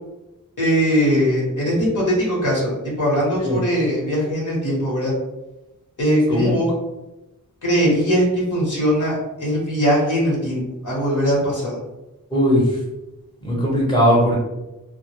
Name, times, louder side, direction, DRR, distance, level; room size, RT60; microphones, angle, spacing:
voice 1, 0.6-5.1 6.0-6.7 7.6-11.8, equal, 60° left, -4 dB, 1.0 m, -20 dB
voice 2, 12.3-12.6 13.4-14.4, equal, 15° left, -4 dB, 0.9 m, -18 dB
2.0 x 2.0 x 3.0 m, 0.99 s
wide cardioid pair, 60°, 34 cm